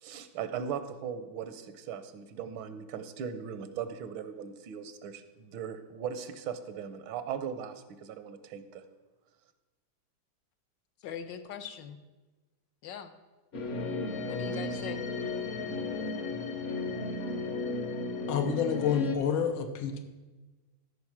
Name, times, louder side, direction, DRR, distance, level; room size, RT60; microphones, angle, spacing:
voice 1, 0.0-8.8, right 7 dB, 75° right, 11 dB, 1.5 m, -38 dB
voice 2, 11.0-12.0 12.8-13.1 14.3-15.0, left 7 dB, 70° left, 8 dB, 1.3 m, -41 dB
sound 1, 13.5-19.2, left 3 dB, 50° left, 1.0 m, -34 dB
voice 3, 18.3-20.0, left 7 dB, 85° left, 6 dB, 1.8 m, -28 dB
13.5 x 5.2 x 5.9 m, 1.2 s
omnidirectional pair, 2.2 m